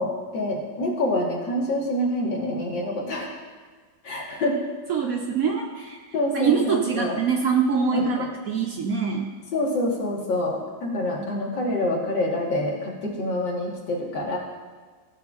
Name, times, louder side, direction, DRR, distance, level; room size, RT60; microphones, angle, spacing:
voice 1, 0.0-3.3 4.0-4.6 6.1-7.2 7.9-8.3 9.5-14.4, left 1 dB, 80° left, -2 dB, 2.1 m, -26 dB
voice 2, 4.9-6.0 6.3-8.2 8.5-9.3, right 6 dB, 65° right, 1 dB, 0.9 m, -24 dB
14.0 x 5.8 x 2.4 m, 1.5 s
omnidirectional pair, 2.0 m